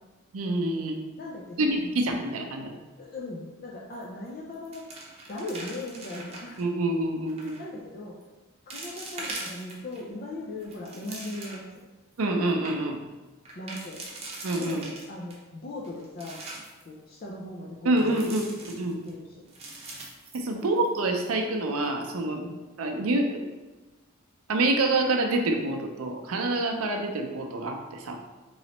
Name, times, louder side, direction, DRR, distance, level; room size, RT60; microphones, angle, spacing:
voice 1, 0.3-1.0 1.6-2.8 6.6-7.6 12.2-13.0 14.4-14.9 17.8-19.0 20.3-22.4 22.8-23.4 24.5-28.2, right 2 dB, 90° right, 3 dB, 0.5 m, -27 dB
voice 2, 1.2-1.8 3.0-4.8 5.3-6.6 7.6-8.1 8.7-11.6 13.6-14.0 14.5-16.4 16.9-18.2 18.5-18.6 19.0-19.3 20.5-20.8 22.4-22.6, left 2 dB, 45° left, -3 dB, 0.5 m, -38 dB
sound 1, 3.9-4.3 4.5-6.6 7.3-7.6 8.2-8.3 8.7-10.0 10.5-11.8 12.2-12.3 12.5-12.7 13.5-15.4 15.8-16.8 18.0-19.1 19.5-21.0 21.2-21.3 21.8-22.1, right 2 dB, 30° right, 0.7 m, -41 dB
4.0 x 3.1 x 2.9 m, 1.2 s
head